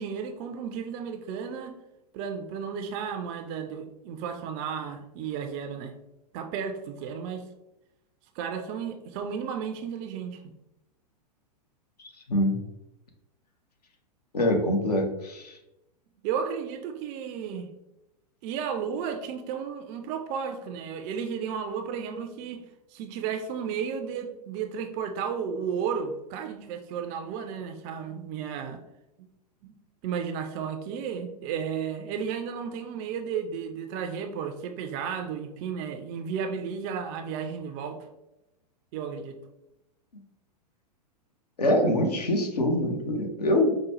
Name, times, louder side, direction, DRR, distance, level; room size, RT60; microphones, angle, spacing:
voice 1, 0.0-1.7 2.1-5.9 6.3-7.4 8.4-10.5 16.2-17.7 18.4-22.6 22.9-28.8 29.6-29.8 30.0-38.1 38.9-39.4, right 7 dB, 30° right, 6 dB, 0.3 m, -33 dB
voice 2, 12.0-12.6 14.3-15.6 41.6-43.7, left 1 dB, 70° left, 3 dB, 0.8 m, -24 dB
4.9 x 2.1 x 2.9 m, 0.90 s
figure-of-eight pair, 100°, 21 cm